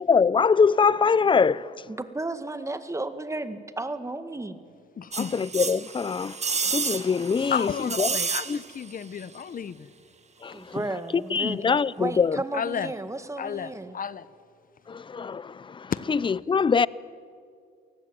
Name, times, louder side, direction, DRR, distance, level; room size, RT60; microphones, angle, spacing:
voice 1, 0.0-1.9 5.2-7.7 8.0-8.2 8.5-8.6 10.4-10.8 11.1-12.4 14.9-16.9, left 5 dB, 25° left, 0.6 m, -23 dB
voice 2, 1.9-4.6 10.5-14.0, right 2 dB, 15° right, 1.9 m, -33 dB
voice 3, 5.0-5.3 7.5-9.9 12.5-12.9 13.4-14.3 15.9-16.0, left 7 dB, 45° left, 1.0 m, -32 dB
sound 1, 5.1-8.9 9.2-9.3, right 5 dB, 35° right, 1.6 m, -31 dB
28.0 x 19.0 x 9.1 m
cardioid pair, 90°, 20 cm